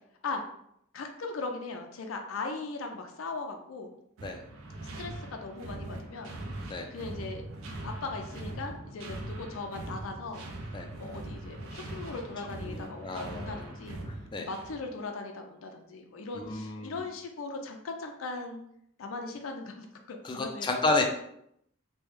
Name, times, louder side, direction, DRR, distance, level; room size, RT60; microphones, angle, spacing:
voice 1, 0.9-3.9 5.0-6.3 6.9-7.5 7.8-10.4 11.0-14.0 14.4-18.6 19.0-20.7, left 3 dB, 85° left, 3 dB, 0.4 m, -39 dB
sound 1, 4.2-14.9, right 1 dB, 85° right, 0.5 m, -41 dB
voice 2, 12.6-13.7 14.3-14.5 16.3-17.0 20.2-21.0, left 3 dB, 25° left, 3 dB, 0.3 m, -31 dB
3.1 x 2.2 x 3.2 m, 0.73 s
head